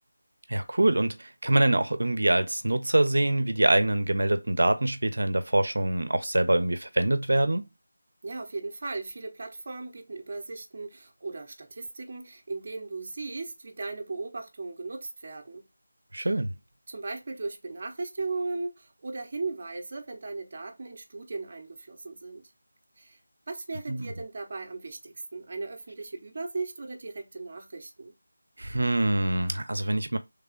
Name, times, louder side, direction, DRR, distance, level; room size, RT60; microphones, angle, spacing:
voice 1, 0.5-7.6 16.1-16.5 23.9-24.1 28.6-30.2, right 1 dB, 75° right, 0.7 m, -24 dB
voice 2, 8.2-15.7 16.2-16.3 16.9-22.5 23.0-23.2 23.5-28.1, right 3 dB, 40° right, 0.8 m, -37 dB
3.3 x 2.3 x 3.7 m
figure-of-eight pair, 170°, 0 cm